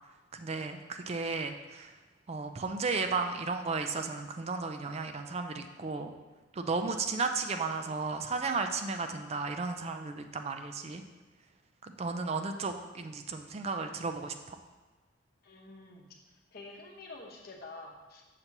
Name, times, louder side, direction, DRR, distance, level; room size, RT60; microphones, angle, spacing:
voice 1, 0.3-1.9 2.3-6.1 6.5-11.0 11.8-14.6, right 4 dB, 35° right, 7 dB, 0.4 m, -34 dB
voice 2, 15.4-16.1 16.5-18.2, left 2 dB, 50° left, 0 dB, 0.9 m, -48 dB
6.6 x 2.9 x 5.8 m, 1.2 s
head